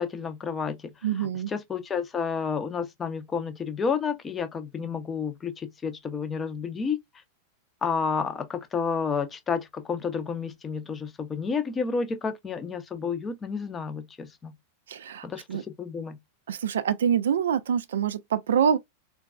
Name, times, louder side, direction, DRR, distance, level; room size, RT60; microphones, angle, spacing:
voice 1, 0.0-0.9 1.2-7.0 7.8-14.6 15.2-16.2, left 5 dB, 20° left, 0.5 m, -30 dB
voice 2, 1.0-1.5 14.9-15.6 16.5-18.8, right 8 dB, 65° right, 0.3 m, -25 dB
3.9 x 2.2 x 2.3 m
figure-of-eight pair, 90°, 0 cm